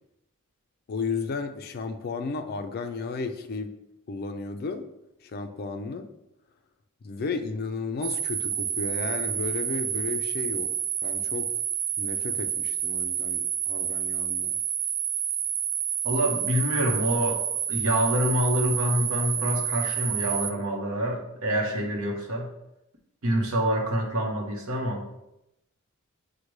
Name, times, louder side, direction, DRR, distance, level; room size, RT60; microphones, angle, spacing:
voice 1, 0.9-3.7 4.1-4.9 5.2-6.1 7.0-10.7 11.0-11.5 12.0-14.5, left 4 dB, 45° left, 7 dB, 0.3 m, -33 dB
sound 1, 8.0-20.5, right 9 dB, 60° right, 0.4 m, -29 dB
voice 2, 16.0-22.5 23.2-25.0, equal, 75° right, 1 dB, 0.8 m, -26 dB
6.4 x 2.1 x 3.1 m, 0.87 s
head